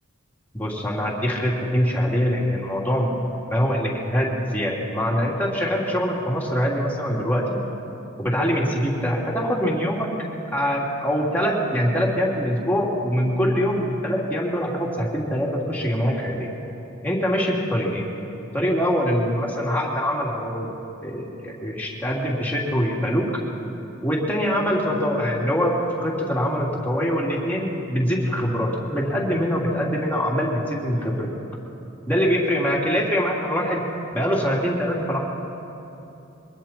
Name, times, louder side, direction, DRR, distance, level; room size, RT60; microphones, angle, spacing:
voice 1, 0.5-3.2 3.5-7.6 8.2-10.1 10.5-16.5 17.0-18.0 18.5-20.8 21.0-23.3 24.0-31.3 32.1-33.8 34.1-35.2, equal, 10° left, -4 dB, 3.0 m, -23 dB
26.0 x 23.0 x 4.5 m, 2.8 s
head